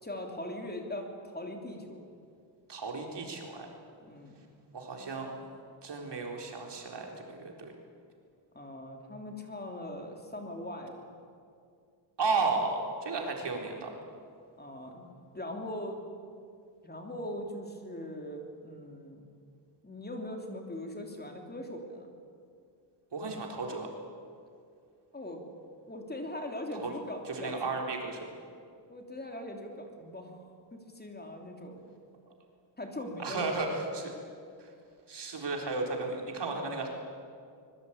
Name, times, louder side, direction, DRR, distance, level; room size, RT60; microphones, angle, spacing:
voice 1, 0.0-2.1 4.0-4.4 8.5-11.2 14.6-15.1 15.3-16.0 16.8-19.2 19.8-22.1 25.1-25.4 25.9-27.6 28.9-32.0 32.8-33.6, left 1 dB, 20° left, 2 dB, 3.2 m, -41 dB
voice 2, 2.7-3.7 4.7-5.3 5.8-7.7 12.2-13.9 23.1-23.9 26.8-26.9 27.4-28.3 33.2-34.1 34.6-34.7 35.1-36.9, right 3 dB, 60° right, 2 dB, 4.0 m, -34 dB
24.5 x 21.5 x 8.7 m, 2.3 s
wide cardioid pair, 135°, 46 cm